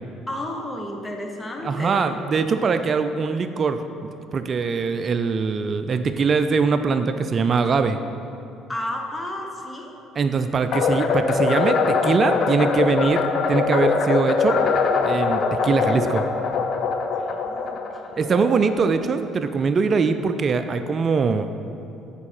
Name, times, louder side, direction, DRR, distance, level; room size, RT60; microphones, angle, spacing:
voice 1, 0.3-2.1 8.7-9.9 15.8-16.2 17.1-18.6, left 1 dB, 20° left, 2 dB, 1.0 m, -33 dB
voice 2, 1.6-8.0 10.2-13.2 13.5-14.6 15.0-16.2 18.2-21.5, right 5 dB, 45° right, 9 dB, 0.3 m, -22 dB
sound 1, 10.7-19.0, left 5 dB, 55° left, 0.5 m, -22 dB
7.0 x 4.7 x 4.3 m, 2.7 s
hypercardioid pair, 60°, 0 cm